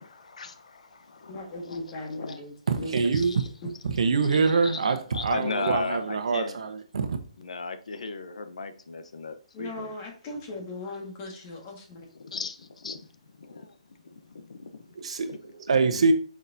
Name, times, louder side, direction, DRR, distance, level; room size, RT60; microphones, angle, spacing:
voice 1, 0.0-2.4 2.7-3.5 3.9-4.0 4.2-6.6 7.4-9.9 12.1-13.1 13.4-13.7 14.3-14.9 15.3-15.5 15.8-15.9, left 4 dB, 85° left, 0.9 m, -37 dB
voice 2, 1.3-3.0 3.6-3.7 9.5-12.1, left 1 dB, 25° left, 1.7 m, -38 dB
voice 3, 2.7-3.4 3.8-7.2 15.0-16.1, right 4 dB, 65° right, 1.0 m, -25 dB
6.6 x 5.9 x 2.7 m
hypercardioid pair, 170°, 4 cm